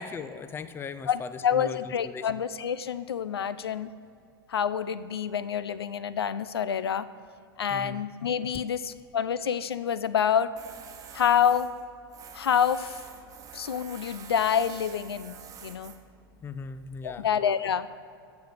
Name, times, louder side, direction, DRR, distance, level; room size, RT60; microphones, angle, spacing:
voice 1, 0.0-2.3 3.3-3.5 7.7-8.0 16.4-17.3, left 5 dB, 20° left, 13 dB, 0.5 m, -39 dB
voice 2, 1.1-3.9 4.5-7.1 7.6-10.5 11.1-11.7 12.3-13.0 13.5-15.9 17.0-18.0, left 8 dB, 80° left, 15 dB, 0.4 m, -27 dB
Tools, 10.6-17.1, right 7 dB, 25° right, 1.1 m, -47 dB
14.0 x 5.2 x 6.5 m, 2.4 s
hypercardioid pair, 95°, 13 cm